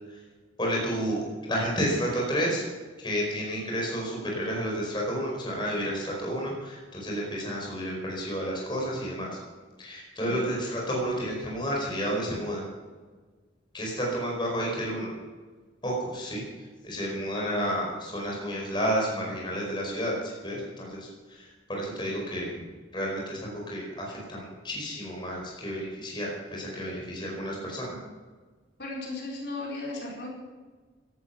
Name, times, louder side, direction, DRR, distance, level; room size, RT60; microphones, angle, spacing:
voice 1, 0.6-2.6 3.0-9.3 9.8-12.6 13.7-15.1 15.8-16.4 16.8-22.5 22.9-27.9, equal, 25° left, -2 dB, 4.9 m, -31 dB
voice 2, 10.2-10.5 27.9-28.0 28.8-30.3, left 2 dB, 60° left, -3 dB, 4.8 m, -36 dB
17.5 x 12.0 x 6.0 m, 1.4 s
head